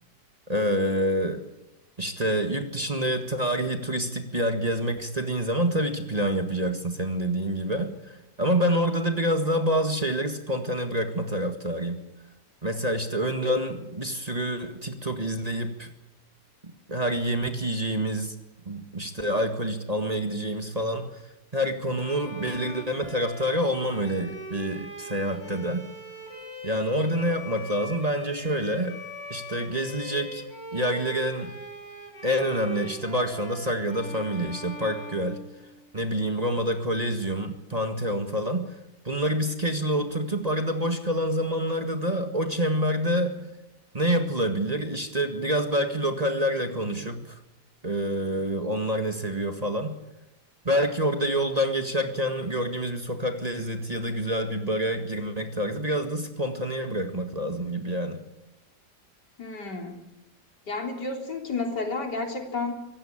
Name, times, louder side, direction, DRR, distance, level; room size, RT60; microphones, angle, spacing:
voice 1, 0.5-1.4 2.0-12.0 12.6-15.9 16.9-18.3 18.7-21.2 21.5-25.8 26.6-29.0 29.3-30.4 30.7-31.5 32.2-35.4 35.9-38.6 39.1-43.5 43.9-47.4 47.8-49.9 50.6-58.2, equal, 25° right, 6 dB, 1.8 m, -27 dB
Bowed string instrument, 21.9-36.0, equal, 60° left, 6.8 m, -41 dB
voice 2, 59.4-60.0 60.7-62.7, left 3 dB, 85° left, 2 dB, 4.2 m, -31 dB
25.0 x 17.0 x 8.8 m, 0.96 s
omnidirectional pair, 1.8 m